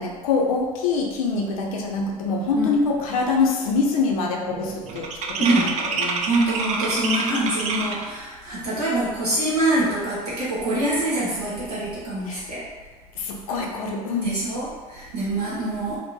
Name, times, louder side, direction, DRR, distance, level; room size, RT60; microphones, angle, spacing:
voice 1, 0.0-6.2 12.3-12.4 13.2-14.4, left 4 dB, 65° left, 0 dB, 0.5 m, -25 dB
sound 1, 2.5-2.6 2.9-3.3 3.5-8.2, right 4 dB, 35° right, 0.4 m, -28 dB
voice 2, 5.4-5.7 6.2-12.6 14.2-16.0, right 1 dB, 85° right, -10 dB, 0.8 m, -25 dB
2.7 x 2.1 x 3.7 m, 1.4 s
figure-of-eight pair, 65°, 19 cm